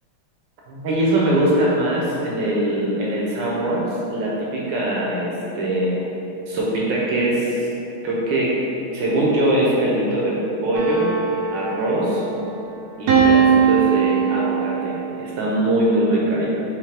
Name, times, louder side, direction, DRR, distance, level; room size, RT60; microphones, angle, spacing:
voice 1, 0.7-6.0 6.5-7.7 8.0-8.6 8.9-11.0 11.5-12.2 13.0-16.5, right 1 dB, 70° right, -4 dB, 1.3 m, -22 dB
sound 1, 10.7-12.4 13.1-15.0, right 7 dB, 90° right, 0.8 m, -19 dB
4.9 x 3.1 x 3.3 m, 2.9 s
omnidirectional pair, 2.3 m